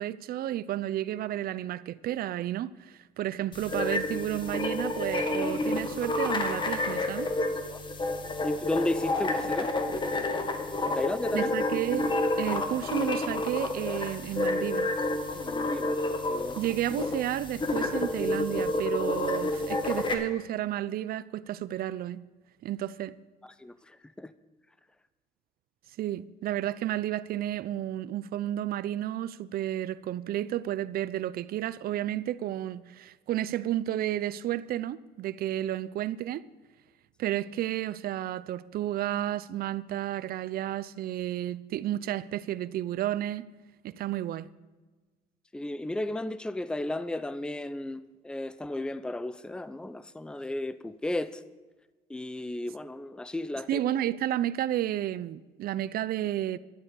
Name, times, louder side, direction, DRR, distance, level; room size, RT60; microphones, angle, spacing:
voice 1, 0.0-7.3 11.3-12.1 12.4-14.9 16.6-22.2 22.6-23.1 26.0-36.4 37.2-43.5 43.8-44.5 53.7-56.6, right 12 dB, 60° right, 0.6 m, -32 dB
sound 1, 3.5-20.1, left 2 dB, 30° left, 1.8 m, -30 dB
voice 2, 8.4-9.8 10.9-11.5 15.3-16.0 16.3-16.6 23.4-24.3 45.5-51.4 52.1-53.8, left 1 dB, 5° left, 0.6 m, -34 dB
12.0 x 8.7 x 8.3 m
cardioid pair, 110°, 17 cm